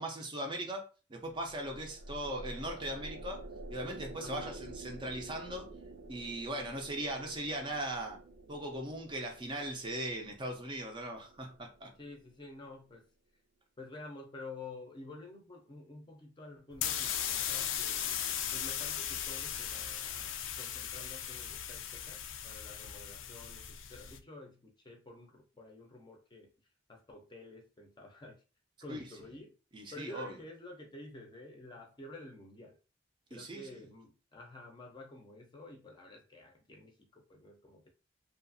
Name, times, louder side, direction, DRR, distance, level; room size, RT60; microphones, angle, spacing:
voice 1, 0.0-3.4 3.7-5.7 6.1-8.2 8.5-11.9 28.9-29.0 29.7-30.3 33.3-33.8, right 1 dB, 25° right, 0.5 m, -39 dB
sound 1, 1.3-12.7, right 2 dB, 80° right, 0.5 m, -49 dB
voice 2, 4.2-4.6 12.0-13.1 13.8-18.2 18.5-26.5 26.9-28.4 28.8-29.6 29.9-32.8 33.3-37.9, left 2 dB, 25° left, 0.5 m, -50 dB
sound 2, 16.7-24.2, left 9 dB, 80° left, 0.4 m, -37 dB
2.7 x 2.4 x 2.6 m
head